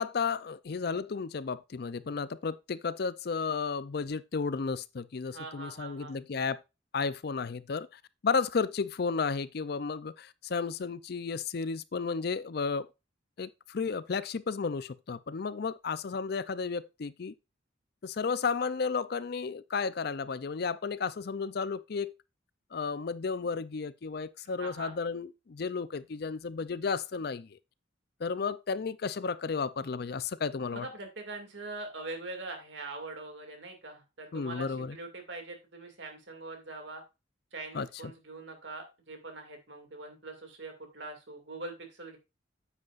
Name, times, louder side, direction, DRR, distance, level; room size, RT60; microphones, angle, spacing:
voice 1, 0.0-6.6 6.9-7.9 8.2-12.9 13.4-17.3 18.0-22.1 22.7-27.6 28.2-30.9 34.3-35.0 37.7-37.9, left 5 dB, 50° left, 0.4 m, -33 dB
voice 2, 5.3-6.2 24.6-24.9 30.7-37.0 37.5-42.2, right 2 dB, 65° right, 2.3 m, -43 dB
9.5 x 7.9 x 2.5 m
head